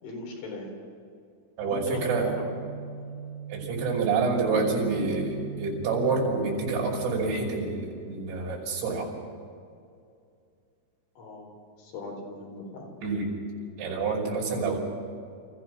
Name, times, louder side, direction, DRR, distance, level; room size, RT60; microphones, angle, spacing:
voice 1, 0.0-0.7 1.6-2.5 11.2-12.9, left 2 dB, 65° left, 0 dB, 6.3 m, -39 dB
voice 2, 1.6-2.3 3.5-9.1 13.0-13.3 13.8-14.8, right 4 dB, 65° right, -2 dB, 7.8 m, -27 dB
sound 1, 1.7-7.3, right 5 dB, 80° right, 4.5 m, -39 dB
28.5 x 15.5 x 6.1 m, 2.4 s
omnidirectional pair, 5.8 m